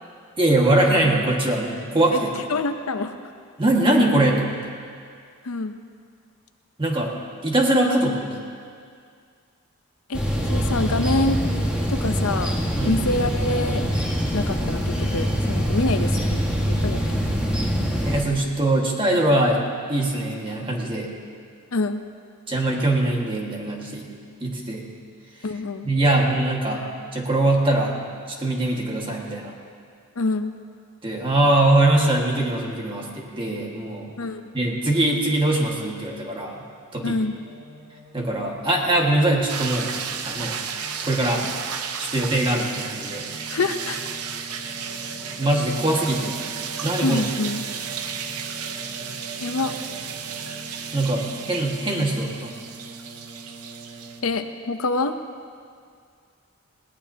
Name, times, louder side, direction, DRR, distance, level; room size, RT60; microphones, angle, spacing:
voice 1, 0.4-2.3 3.6-4.7 6.8-7.1 7.4-8.4 12.8-13.0 18.0-19.6 19.9-21.1 22.5-24.1 24.4-24.8 25.8-26.8 27.1-27.9 28.3-29.5 31.0-34.1 34.5-36.6 36.9-37.2 38.1-39.9 40.2-40.6 41.0-41.5 42.0-43.2 45.4-46.4 46.8-47.2 50.9-52.5, right 1 dB, 25° right, -1 dB, 1.7 m, -22 dB
voice 2, 2.5-3.1 5.4-5.7 10.1-10.2 10.5-11.4 11.9-12.5 12.8-13.8 14.3-17.0 21.7-22.0 25.4-25.9 30.2-30.5 34.2-34.5 37.0-37.3 43.5-44.0 47.0-47.7 49.4-49.7 54.2-55.1, left 2 dB, 70° left, 8 dB, 0.7 m, -26 dB
sound 1, 10.1-18.2, equal, 5° right, 1.6 m, -24 dB
Singing, 37.2-54.3, right 2 dB, 50° right, 3.5 m, -41 dB
sound 2, 39.5-54.2, right 7 dB, 85° right, 0.8 m, -33 dB
20.0 x 18.0 x 2.8 m, 2.2 s
head